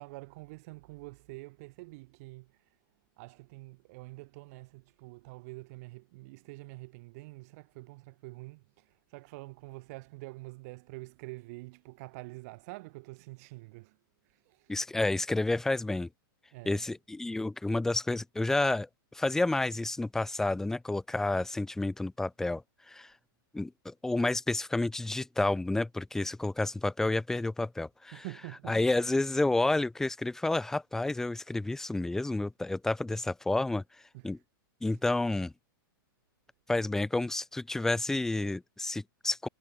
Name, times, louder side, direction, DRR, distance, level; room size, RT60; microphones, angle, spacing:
voice 1, 0.0-2.7 3.2-14.0 14.2-14.7 16.5-16.9 28.1-28.8 34.1-34.4 34.9-35.0, right 23 dB, 45° right, 7.9 m, -46 dB
voice 2, 14.7-16.1 16.7-23.1 23.5-28.2 28.7-33.8 34.2-34.4 34.8-35.5 36.7-39.5, left 2 dB, 5° left, 1.8 m, -30 dB
supercardioid pair, 160°, 12 cm